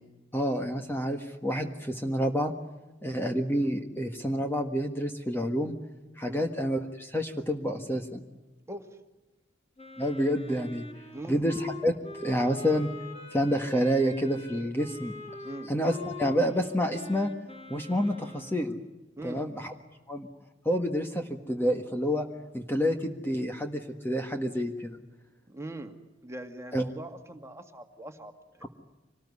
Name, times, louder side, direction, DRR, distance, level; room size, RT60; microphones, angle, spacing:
voice 1, 0.3-2.5 3.0-5.8 6.2-8.2 10.0-10.9 11.3-11.9 12.2-12.9 13.3-15.1 15.7-17.3 17.7-18.8 19.2-19.7 20.1-20.3 20.6-22.3 22.5-25.0 26.7-26.8 28.6-28.7, equal, 10° left, 4 dB, 1.5 m, -28 dB
Wind instrument woodwind instrument, 9.8-18.6, left 3 dB, 35° left, 5.3 m, -44 dB
voice 2, 11.1-11.4 15.4-15.7 19.2-19.4 25.5-25.9 26.2-28.7, right 1 dB, 15° right, 5 dB, 2.1 m, -42 dB
25.5 x 19.5 x 9.7 m, 1.1 s
head